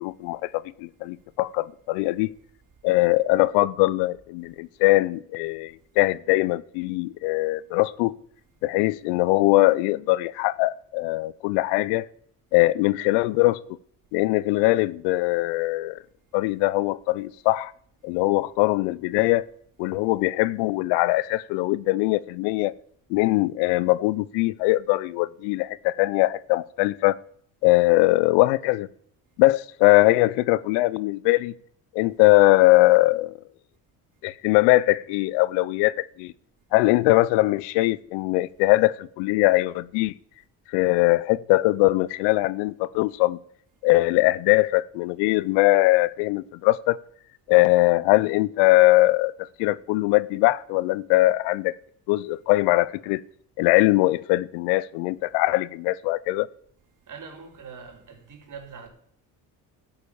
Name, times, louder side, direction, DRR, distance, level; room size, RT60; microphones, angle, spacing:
voice 1, 0.0-2.3 2.8-8.2 8.6-12.1 12.5-13.6 14.1-16.0 16.3-17.7 18.0-19.5 19.8-22.7 23.1-27.1 27.6-28.9 29.4-31.5 31.9-33.3 34.2-36.3 36.7-40.1 40.7-43.4 43.8-47.0 47.5-49.3 49.6-51.7 52.1-53.2 53.6-56.5, left 19 dB, 85° left, 0.6 m, -21 dB
voice 2, 57.1-58.9, right 5 dB, 50° right, 4.0 m, -42 dB
12.0 x 9.5 x 7.0 m
supercardioid pair, 80°, 40 cm